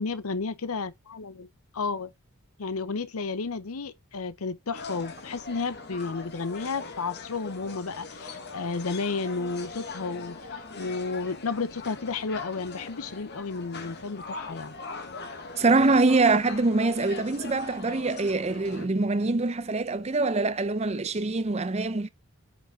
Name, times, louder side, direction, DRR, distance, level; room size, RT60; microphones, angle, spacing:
voice 1, 0.0-1.5 1.7-2.1 2.6-14.7, left 4 dB, 80° left, 0.7 m, -32 dB
sound 1, 4.7-18.9, left 3 dB, 50° left, 1.5 m, -41 dB
voice 2, 15.6-22.1, right 3 dB, 30° right, 0.6 m, -24 dB
9.6 x 5.2 x 3.7 m
head